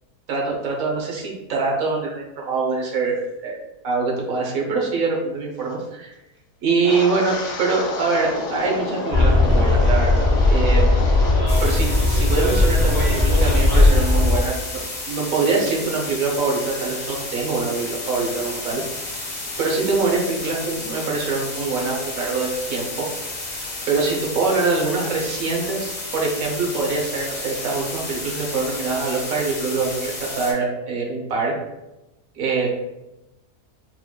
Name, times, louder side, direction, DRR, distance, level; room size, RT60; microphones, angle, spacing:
voice 1, 0.3-3.6 3.8-6.1 6.6-10.9 11.6-14.8 15.1-18.8 19.6-23.1 23.4-31.6 32.3-32.7, right 4 dB, 60° right, -1 dB, 1.3 m, -24 dB
Wind, 6.8-11.7 11.9-12.4 12.8-13.1, left 3 dB, 80° left, 1.6 m, -29 dB
Bus, 9.1-14.4, left 2 dB, 30° right, 1.5 m, -17 dB
sound 1, 11.5-30.5, left 2 dB, 45° left, 1.3 m, -32 dB
4.5 x 3.9 x 2.3 m, 0.99 s
omnidirectional pair, 1.7 m